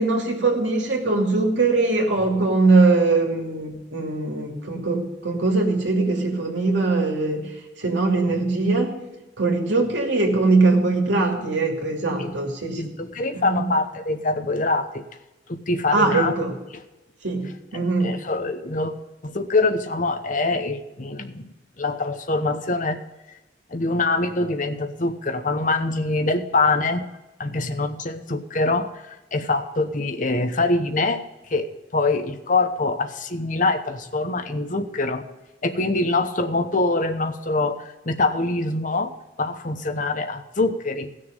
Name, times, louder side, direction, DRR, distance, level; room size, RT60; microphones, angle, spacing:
voice 1, 0.0-7.5 7.8-8.9 9.4-12.9 13.3-13.6 15.9-16.5 17.2-18.1, right 3 dB, 80° right, 1 dB, 2.6 m, -21 dB
voice 2, 12.8-15.0 15.5-16.3 16.7-16.8 17.7-18.9 19.2-21.5 21.8-23.0 23.7-27.0 27.4-31.2 31.5-35.2 35.6-39.1 39.4-41.1, left 3 dB, 45° left, 8 dB, 0.9 m, -24 dB
17.5 x 6.6 x 5.2 m, 1.0 s
head